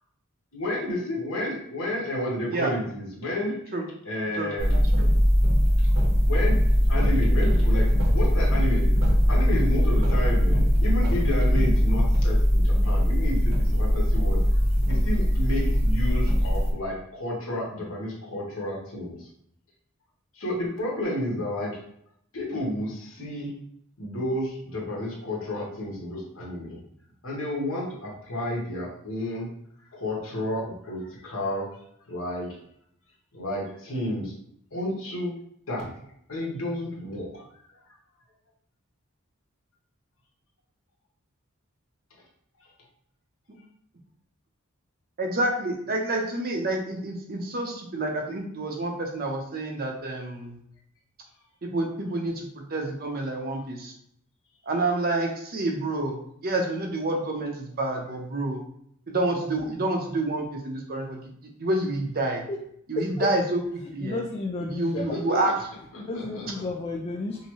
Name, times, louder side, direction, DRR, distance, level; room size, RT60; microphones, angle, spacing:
voice 1, 0.5-3.6 4.0-4.8 6.2-8.9 9.3-14.6 14.9-19.3 20.3-21.8 22.3-23.5 24.0-26.8 27.2-29.5 29.9-31.7 32.1-32.6 33.3-34.4 34.7-35.3 35.7-35.9 36.3-37.5 65.1-65.4 65.9-66.6, left 1 dB, 70° left, -3 dB, 1.3 m, -31 dB
voice 2, 4.4-5.1 45.2-50.6 51.6-53.9 54.7-56.2 56.4-58.6 59.1-61.2 61.6-62.4 62.9-63.6 63.9-64.2 64.6-65.5, right 2 dB, 45° right, 2 dB, 0.7 m, -28 dB
sound 1, 4.6-16.7, equal, 65° right, 1.1 m, -21 dB
voice 3, 62.9-63.3 64.0-65.1 66.0-67.4, left 2 dB, 30° left, 1 dB, 0.3 m, -31 dB
5.4 x 2.1 x 3.1 m, 0.70 s
head